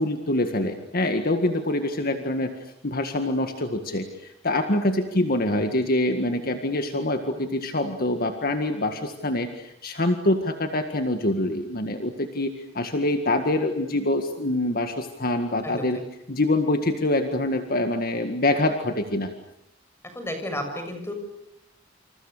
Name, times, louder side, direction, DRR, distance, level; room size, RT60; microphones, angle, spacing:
voice 1, 0.0-2.5 2.8-16.0 16.3-19.3, left 1 dB, 50° left, 6 dB, 1.9 m, -25 dB
voice 2, 20.1-21.1, left 1 dB, 15° left, 5 dB, 7.0 m, -32 dB
28.5 x 28.0 x 6.8 m, 0.79 s
head